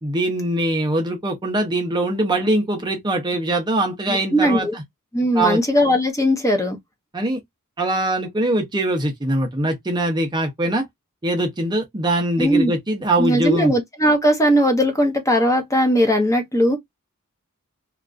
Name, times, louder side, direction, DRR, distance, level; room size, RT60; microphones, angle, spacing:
voice 1, 0.0-4.8 5.3-5.6 7.1-7.4 7.8-10.8 11.2-13.7, right 1 dB, 20° right, 0.6 m, -22 dB
voice 2, 4.1-4.7 5.1-6.8 12.4-12.7 13.2-16.8, equal, 15° left, 0.7 m, -18 dB
2.9 x 2.4 x 2.4 m
head